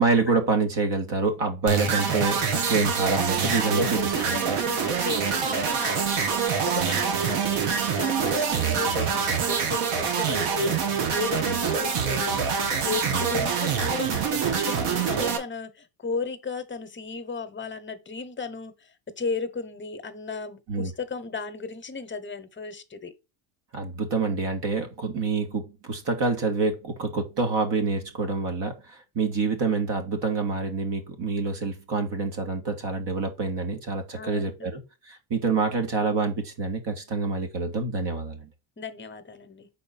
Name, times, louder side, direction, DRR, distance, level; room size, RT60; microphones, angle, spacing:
voice 1, 0.0-2.4 2.7-4.0 4.3-4.4 11.5-11.6 13.1-13.3 20.7-20.9 23.7-34.8 35.1-38.5, right 4 dB, 55° right, 1.9 m, -27 dB
sound 1, 1.7-15.4, right 6 dB, 85° right, 1.6 m, -25 dB
voice 2, 3.3-12.4 12.8-18.9 19.2-23.1 34.2-34.7 38.8-39.7, left 4 dB, 25° left, 0.9 m, -35 dB
5.3 x 4.2 x 4.2 m
cardioid pair, 120°, 49 cm